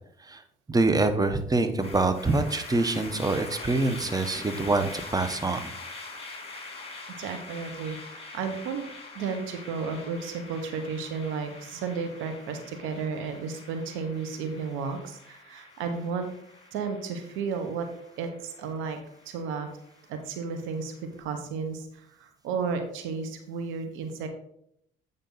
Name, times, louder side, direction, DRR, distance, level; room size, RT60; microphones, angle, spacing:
voice 1, 0.7-5.7, right 3 dB, 20° right, 8 dB, 1.0 m, -25 dB
sound 1, 1.8-21.0, left 3 dB, 30° left, 2.3 m, -44 dB
voice 2, 7.2-8.9 9.1-16.3 16.7-17.9 18.2-19.0 19.2-19.7 20.1-24.3, right 5 dB, 80° right, 6 dB, 1.2 m, -33 dB
8.7 x 5.3 x 4.0 m, 0.71 s
supercardioid pair, 60°, 20 cm